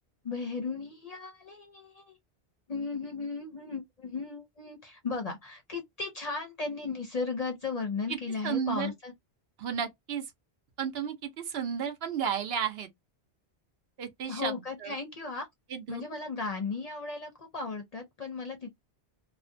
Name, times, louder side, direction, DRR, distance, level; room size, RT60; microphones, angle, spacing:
voice 1, 0.2-2.2 2.7-9.1 14.3-15.5 15.9-18.7, left 4 dB, 45° left, 0.5 m, -36 dB
voice 2, 8.4-8.9 9.6-10.2 10.8-12.9 14.0-14.9 15.7-16.0, right 8 dB, 70° right, 0.8 m, -33 dB
2.4 x 2.1 x 2.5 m
omnidirectional pair, 1.1 m